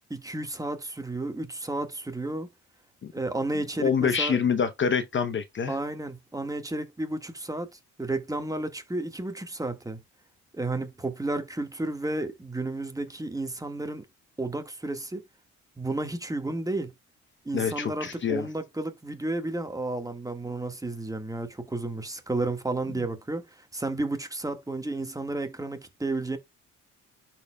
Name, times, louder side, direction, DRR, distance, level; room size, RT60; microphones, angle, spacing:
voice 1, 0.1-2.5 3.1-4.4 5.7-10.0 10.5-14.0 14.4-15.2 15.8-16.9 17.4-26.4, right 2 dB, 10° right, 1.5 m, -32 dB
voice 2, 3.8-5.8 17.5-18.5, left 6 dB, 40° left, 0.7 m, -26 dB
12.0 x 4.4 x 2.2 m
cardioid pair, 90°, 30 cm